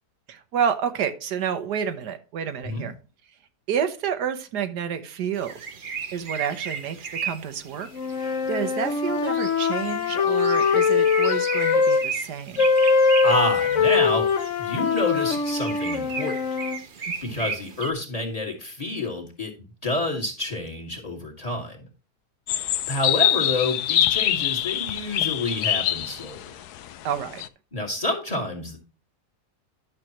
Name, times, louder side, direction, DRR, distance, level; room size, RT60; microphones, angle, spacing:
voice 1, 0.3-2.9 3.7-5.7 6.1-12.7 17.1-17.5 27.0-27.4, right 8 dB, 90° right, 9 dB, 1.6 m, -29 dB
sound 1, 5.3-17.9, right 6 dB, 45° right, 0.8 m, -36 dB
sound 2, 7.9-12.0 12.6-16.8, left 5 dB, 55° left, 1.1 m, -22 dB
voice 2, 13.2-16.4 17.0-21.9 22.9-26.4 27.7-28.8, left 2 dB, 25° left, 2 dB, 2.1 m, -28 dB
sound 3, 22.5-27.5, left 12 dB, 80° left, 1.2 m, -24 dB
11.5 x 6.6 x 3.1 m, 0.33 s
omnidirectional pair, 1.7 m